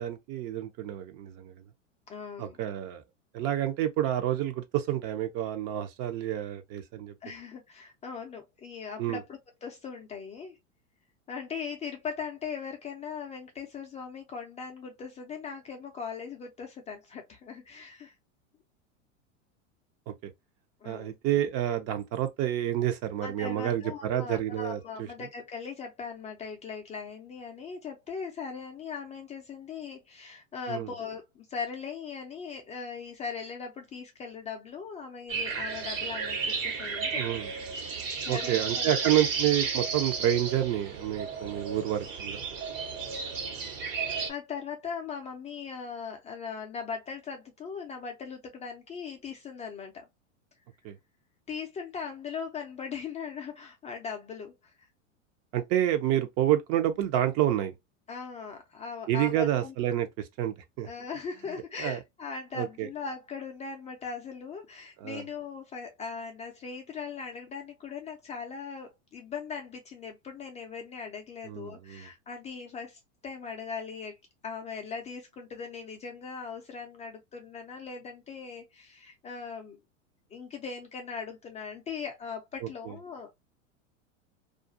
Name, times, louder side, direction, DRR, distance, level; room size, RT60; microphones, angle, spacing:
voice 1, 0.0-1.5 2.4-3.0 3.3-7.1 9.0-9.2 20.1-20.2 20.8-25.1 30.7-30.9 37.1-37.5 38.3-42.4 50.8-50.9 55.5-57.7 59.1-60.9 61.8-62.0 62.5-62.9 65.0-65.2 71.4-72.1 82.6-82.9, right 12 dB, 40° right, 0.6 m, -29 dB
voice 2, 2.1-2.6 7.2-10.6 11.3-18.1 20.8-21.2 23.2-37.2 37.8-39.1 43.9-50.1 51.5-54.7 58.1-59.7 60.8-74.2 74.4-79.8 80.3-83.3, left 6 dB, 20° left, 0.4 m, -39 dB
sound 1, 35.3-44.3, right 5 dB, 75° right, 1.2 m, -33 dB
2.4 x 2.3 x 2.5 m
hypercardioid pair, 105°, 38 cm